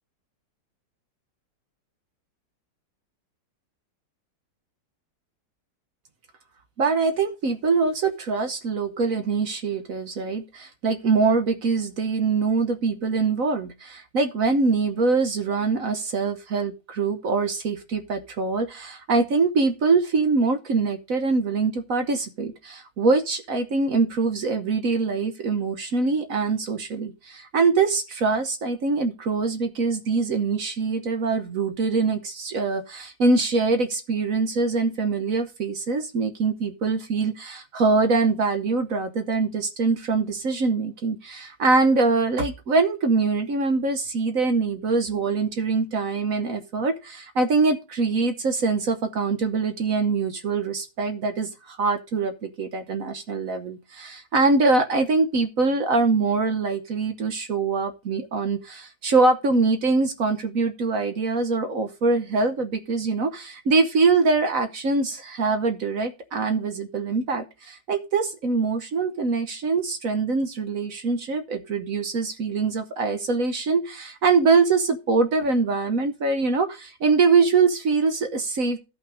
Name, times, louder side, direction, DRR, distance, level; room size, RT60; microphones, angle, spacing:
voice 1, 6.8-78.8, right 4 dB, 55° right, 9 dB, 1.2 m, -23 dB
12.0 x 5.8 x 4.9 m, 0.29 s
omnidirectional pair, 1.9 m